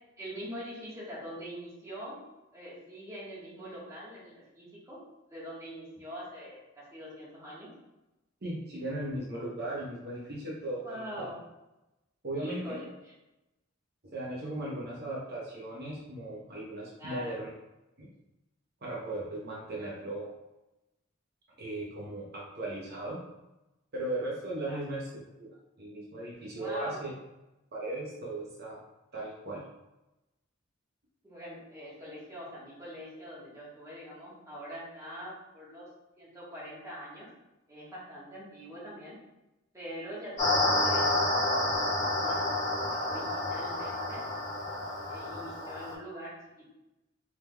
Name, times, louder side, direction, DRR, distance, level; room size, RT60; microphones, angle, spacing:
voice 1, 0.2-2.2 2.5-5.0 5.3-7.7 10.8-11.4 12.4-12.9 17.0-17.4 19.7-19.9 24.7-24.9 26.6-27.0 31.2-35.9 36.2-37.3 37.7-39.2 39.7-41.1 42.0-44.2 45.1-46.8, equal, 15° right, -7 dB, 1.3 m, -43 dB
voice 2, 8.4-11.3 12.2-12.8 14.1-17.5 18.0-18.1 18.8-20.3 21.6-23.2 23.9-25.2 25.5-27.1 27.7-28.8 29.1-29.6, right 1 dB, 50° right, -5 dB, 0.8 m, -37 dB
sound 1, 40.4-45.9, left 1 dB, 35° left, 1.4 m, -29 dB
4.7 x 3.6 x 2.2 m, 0.97 s
head